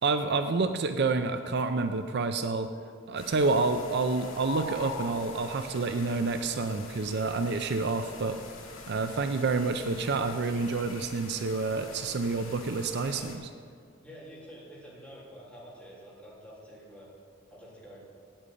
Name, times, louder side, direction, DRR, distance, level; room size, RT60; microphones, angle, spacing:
voice 1, 0.0-2.7 3.1-8.4 8.9-13.5, right 3 dB, 55° right, 8 dB, 0.5 m, -28 dB
sound 1, 3.2-13.4, left 3 dB, 85° left, 1.8 m, -44 dB
voice 2, 14.0-17.1 17.5-18.0, equal, 5° left, -8 dB, 3.5 m, -48 dB
8.8 x 8.7 x 8.4 m, 2.1 s
head